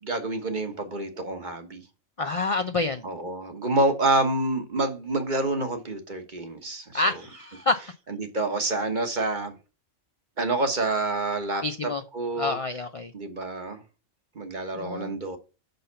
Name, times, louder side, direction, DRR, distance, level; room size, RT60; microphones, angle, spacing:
voice 1, 0.0-1.8 3.0-7.2 8.2-9.5 10.4-11.6 12.1-12.6 13.1-13.8 14.3-15.4, right 2 dB, 40° right, 1.3 m, -27 dB
voice 2, 2.2-3.0 6.9-7.8 11.6-12.0 12.4-13.1 14.7-15.1, left 3 dB, 45° left, 0.4 m, -27 dB
5.6 x 5.3 x 6.8 m
omnidirectional pair, 1.3 m